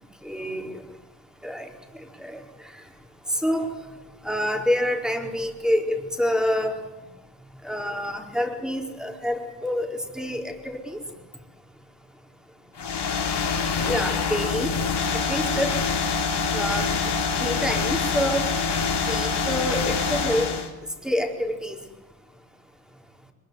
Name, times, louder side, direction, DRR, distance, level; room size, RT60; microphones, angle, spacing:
voice 1, 0.2-0.7 1.4-1.7 2.2-2.4 3.4-3.7 4.2-6.7 7.6-11.0 13.9-14.7 15.3-15.7 16.5-16.9 17.4-18.5 19.1-20.5 21.0-21.8, equal, ahead, 4 dB, 4.4 m, -27 dB
sound 1, 12.8-20.7, left 5 dB, 55° left, 3.9 m, -25 dB
22.0 x 21.5 x 9.6 m, 1.1 s
cardioid pair, 75°, 49 cm